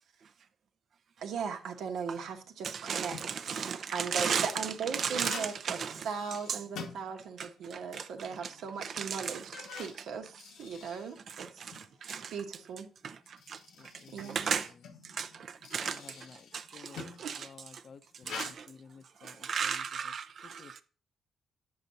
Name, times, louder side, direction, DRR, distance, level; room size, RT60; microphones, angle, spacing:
voice 1, 1.2-3.2 3.5-3.6 3.9-5.8 6.0-11.7 12.3-12.9 14.1-14.6 17.2-17.3, right 6 dB, 80° right, 1.1 m, -38 dB
voice 2, 2.6-4.5 4.9-6.1 7.4-8.1 8.4-8.5 8.8-9.6 11.3-12.3 13.0-13.6 14.3-14.7 15.0-16.2 16.5-17.5 18.3-18.7 19.2-20.8, right 7 dB, 50° right, 0.6 m, -36 dB
sound 1, 3.1-3.5 4.2-7.6 7.9-8.0 8.7-8.8 9.3-11.9 13.1-17.3 18.2-18.5, left 5 dB, 85° left, 1.0 m, -47 dB
voice 3, 13.8-14.4 15.8-17.0 17.4-19.8 20.6-20.8, left 5 dB, 50° left, 0.6 m, -53 dB
8.9 x 6.6 x 2.7 m
cardioid pair, 125°, 0 cm